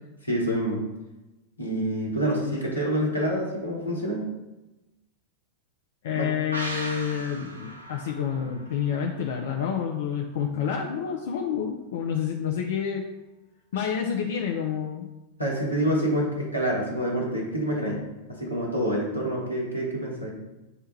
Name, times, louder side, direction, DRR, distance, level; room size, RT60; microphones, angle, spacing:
voice 1, 0.2-0.8 1.6-4.3 6.1-6.3 15.4-18.0 18.3-20.3, equal, 90° left, -3 dB, 1.0 m, -27 dB
voice 2, 6.0-13.0 13.7-15.1, left 8 dB, 55° left, 1 dB, 0.3 m, -28 dB
sound 1, 6.5-10.0 10.3-10.4, right 1 dB, 80° right, 0.4 m, -39 dB
6.6 x 2.2 x 3.0 m, 1.0 s
figure-of-eight pair, 90°, 0 cm